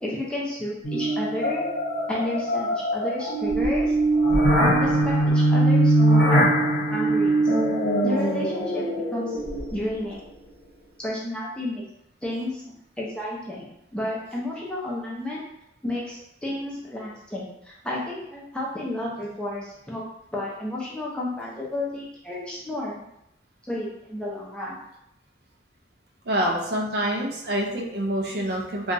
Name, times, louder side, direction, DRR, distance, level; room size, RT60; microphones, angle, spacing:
voice 1, 0.0-1.6 2.1-3.9 4.6-7.5 8.0-9.4 9.7-10.2 11.0-11.8 12.2-15.4 15.8-20.0 20.3-23.0 23.7-24.8 26.4-26.5, left 1 dB, 5° left, -5 dB, 0.5 m, -32 dB
sound 1, 0.8-9.9, right 1 dB, 55° left, 0.8 m, -22 dB
voice 2, 26.2-28.9, right 1 dB, 55° right, 0 dB, 0.4 m, -26 dB
2.9 x 2.3 x 2.5 m, 0.79 s
head